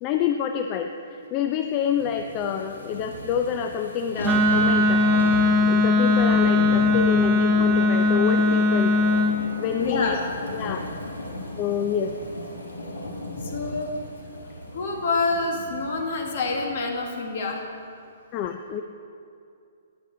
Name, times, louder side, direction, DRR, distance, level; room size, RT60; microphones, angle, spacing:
voice 1, 0.0-5.1 5.7-8.9 9.6-10.2 10.5-10.8 11.6-12.1 18.3-18.8, left 8 dB, 35° left, 6 dB, 0.4 m, -27 dB
sound 1, 1.9-16.3 16.7-16.8, left 1 dB, 90° left, 1.5 m, -35 dB
Wind instrument woodwind instrument, 4.2-9.4, left 2 dB, 20° right, 0.8 m, -19 dB
voice 2, 9.8-10.2 13.5-13.9 14.7-17.6, left 3 dB, 55° left, 2 dB, 1.4 m, -27 dB
9.8 x 8.3 x 3.8 m, 2.5 s
hypercardioid pair, 130°, 0 cm